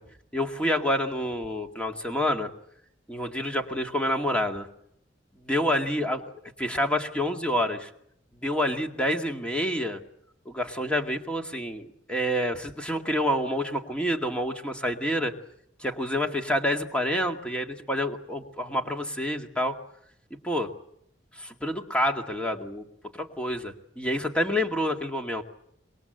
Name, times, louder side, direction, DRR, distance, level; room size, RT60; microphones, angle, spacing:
voice 1, 0.3-2.5 3.1-4.7 5.4-6.2 6.6-7.9 8.4-10.0 10.5-15.3 15.8-19.8 20.4-20.7 21.4-22.9 23.2-25.4, equal, 5° left, 3 dB, 2.1 m, -28 dB
26.0 x 22.5 x 7.9 m, 0.72 s
head